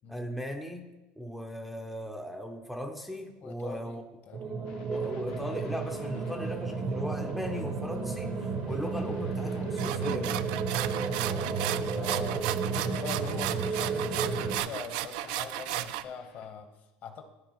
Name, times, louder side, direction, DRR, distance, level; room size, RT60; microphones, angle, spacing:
voice 1, 0.1-4.0 4.9-10.4, equal, ahead, 2 dB, 0.5 m, -37 dB
voice 2, 3.4-4.0 4.3-4.8 10.9-17.2, left 5 dB, 40° left, 6 dB, 0.9 m, -43 dB
sound 1, 4.3-14.6, right 4 dB, 35° right, 0.7 m, -32 dB
sound 2, 4.6-16.5, left 6 dB, 75° left, 1.1 m, -54 dB
sound 3, 9.8-16.0, right 14 dB, 75° right, 0.3 m, -34 dB
13.0 x 4.6 x 3.0 m, 1.0 s
cardioid pair, 145°, 4 cm